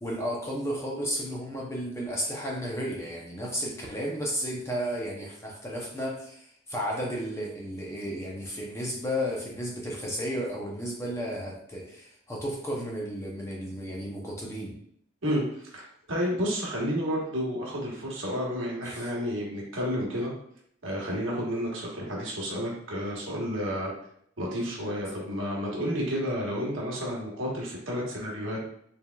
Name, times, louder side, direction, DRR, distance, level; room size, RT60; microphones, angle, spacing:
voice 1, 0.0-14.8 18.8-19.1, equal, 15° left, -2 dB, 0.7 m, -33 dB
voice 2, 15.2-20.3 20.8-23.9 24.4-28.6, equal, 70° right, -3 dB, 1.3 m, -31 dB
4.8 x 3.5 x 2.3 m, 0.67 s
head